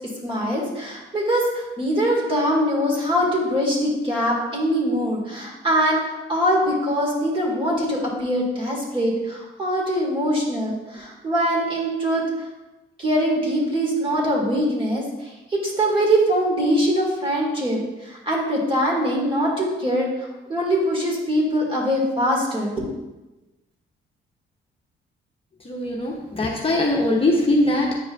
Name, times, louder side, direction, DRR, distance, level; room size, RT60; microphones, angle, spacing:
voice 1, 0.2-12.2 13.0-15.0 15.5-17.8 18.0-22.7, equal, 25° right, -3 dB, 2.4 m, -22 dB
voice 2, 25.6-28.0, left 1 dB, 30° left, -1 dB, 1.0 m, -21 dB
9.4 x 4.9 x 2.6 m, 1.1 s
cardioid pair, 90°, 20 cm